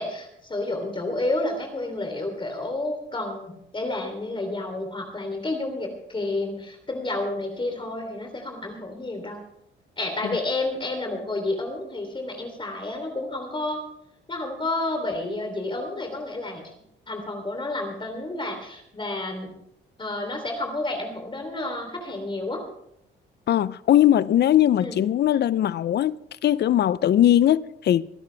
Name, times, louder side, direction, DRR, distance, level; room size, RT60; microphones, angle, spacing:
voice 1, 0.0-9.4 10.0-13.8 14.3-16.7 17.1-19.5 20.0-22.6 24.8-24.9, left 2 dB, 25° left, 3.4 m, -30 dB
voice 2, 23.5-28.1, left 11 dB, 55° left, 0.6 m, -20 dB
25.5 x 10.5 x 3.4 m
cardioid pair, 90°, 20 cm